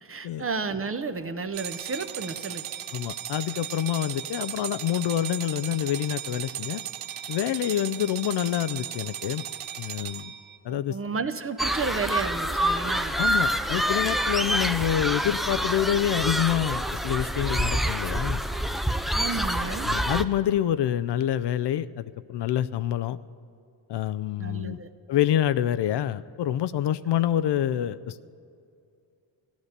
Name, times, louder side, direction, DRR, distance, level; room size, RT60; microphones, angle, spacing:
voice 1, 0.0-2.7 10.7-13.2 19.1-19.9 24.4-24.9, right 4 dB, 30° right, 9 dB, 0.7 m, -32 dB
sound 1, 1.5-10.6, right 11 dB, 75° right, 0.7 m, -36 dB
voice 2, 2.9-6.8 7.3-9.4 9.8-10.3 10.6-11.0 13.2-18.4 19.8-23.2 23.9-24.8 25.1-28.2, left 11 dB, 60° left, 15 dB, 0.5 m, -27 dB
sound 2, 11.6-20.2, equal, ahead, 0.3 m, -27 dB
15.0 x 11.0 x 6.7 m, 2.4 s
cardioid pair, 100°, 48 cm